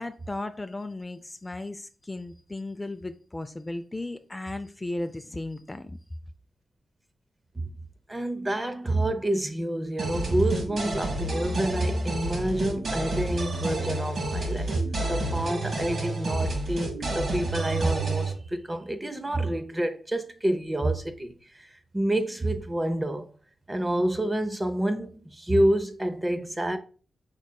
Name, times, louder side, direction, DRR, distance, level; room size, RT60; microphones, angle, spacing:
voice 1, 0.0-6.0, left 2 dB, 20° left, 0.4 m, -35 dB
voice 2, 8.1-23.3 23.7-26.8, right 1 dB, 20° right, 0.6 m, -28 dB
sound 1, 10.0-18.3, right 2 dB, 70° right, 1.2 m, -30 dB
5.2 x 3.5 x 2.2 m
cardioid pair, 55°, 0 cm